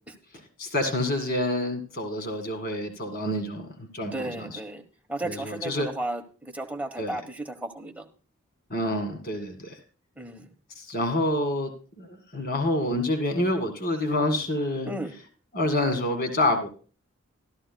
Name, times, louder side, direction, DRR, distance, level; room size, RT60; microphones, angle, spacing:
voice 1, 0.6-4.5 5.2-5.9 7.0-7.2 8.7-9.7 10.8-11.7 12.0-14.9 15.5-16.7, left 1 dB, 45° left, 2.0 m, -27 dB
voice 2, 4.1-4.8 5.1-8.0 10.2-10.5 14.8-15.2, right 1 dB, 5° right, 1.1 m, -34 dB
13.5 x 13.5 x 2.3 m
head